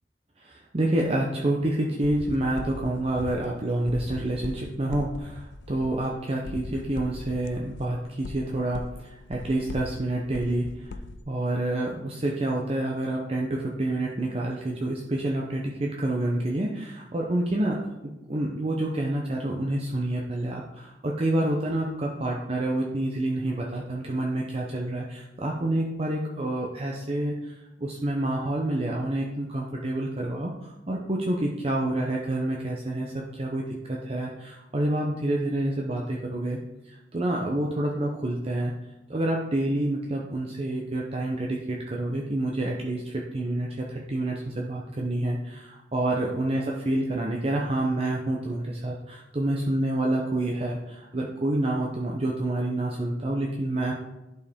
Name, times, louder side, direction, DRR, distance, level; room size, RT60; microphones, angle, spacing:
voice 1, 0.4-10.9 11.3-27.5 27.8-36.6 36.9-38.7 39.1-53.9, right 1 dB, 35° right, -2 dB, 0.7 m, -28 dB
sound 1, 2.0-11.2, left 3 dB, 70° left, 0.5 m, -39 dB
11.0 x 4.6 x 3.5 m, 0.97 s
head